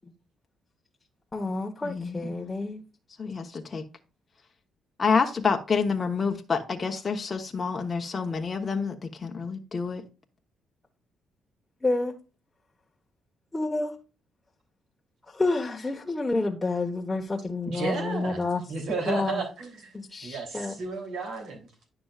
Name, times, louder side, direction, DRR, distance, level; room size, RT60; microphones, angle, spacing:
voice 1, 1.3-2.8 11.8-12.2 13.5-13.9 15.3-18.6 19.1-19.4 19.9-20.7, left 2 dB, 15° left, 1.2 m, -29 dB
voice 2, 1.8-2.4 3.2-3.8 5.0-10.0, left 5 dB, 35° left, 1.0 m, -28 dB
voice 3, 17.7-19.9 20.2-21.9, right 4 dB, 75° right, 3.2 m, -33 dB
10.0 x 6.0 x 2.4 m
cardioid pair, 90°, 0 cm